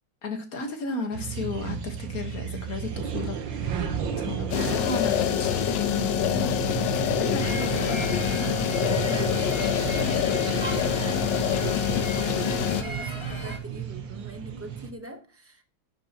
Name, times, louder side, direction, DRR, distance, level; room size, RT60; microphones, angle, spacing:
voice 1, 0.2-3.9 4.2-6.5 7.1-9.2, left 3 dB, 50° left, 1.8 m, -34 dB
sound 1, 1.1-14.9, right 8 dB, 85° right, 1.8 m, -33 dB
sound 2, 4.5-12.8, left 10 dB, 80° left, 1.5 m, -26 dB
sound 3, 7.4-13.6, left 1 dB, 15° left, 1.7 m, -36 dB
voice 2, 10.0-15.6, right 1 dB, 15° right, 0.5 m, -44 dB
11.5 x 7.5 x 2.9 m
omnidirectional pair, 2.0 m